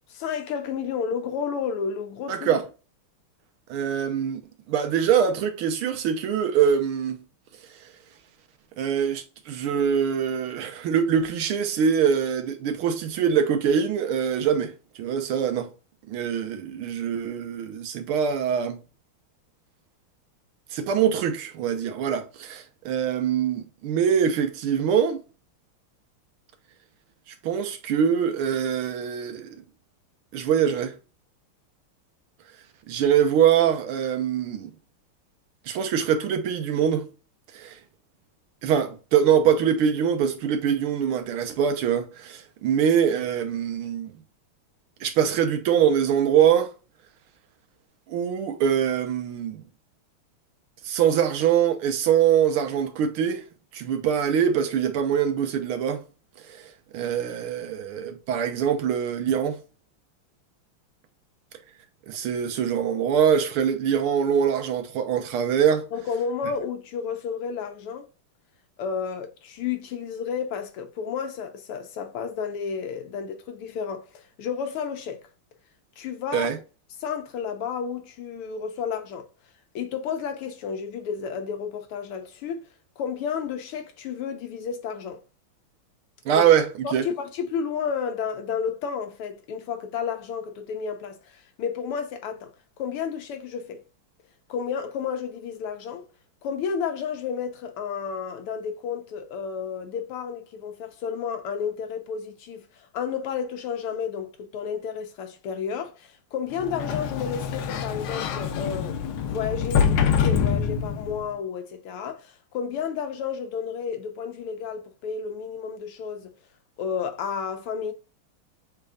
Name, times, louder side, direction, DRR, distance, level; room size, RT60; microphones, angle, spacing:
voice 1, 0.1-2.6 65.9-68.1 68.8-75.2 76.0-76.5 77.0-79.3 79.8-82.7 83.0-85.2 86.3-86.5 86.8-92.5 92.8-93.8 94.5-96.0 96.4-116.3 116.8-117.9, left 6 dB, 85° left, 1.8 m, -31 dB
voice 2, 2.3-2.6 3.7-4.4 4.7-7.2 8.8-14.7 15.0-15.7 16.1-18.8 20.7-25.2 27.4-29.6 30.3-30.9 32.9-34.7 35.7-37.1 37.5-37.8 38.6-44.1 45.0-46.7 48.1-49.6 50.9-53.4 53.7-56.0 56.5-56.6 56.9-59.6 62.1-65.9 76.3-76.6 86.3-87.1, right 8 dB, 75° right, 1.7 m, -23 dB
Sliding door, 106.6-111.3, left 7 dB, 70° left, 1.2 m, -25 dB
6.5 x 3.4 x 2.4 m
omnidirectional pair, 2.4 m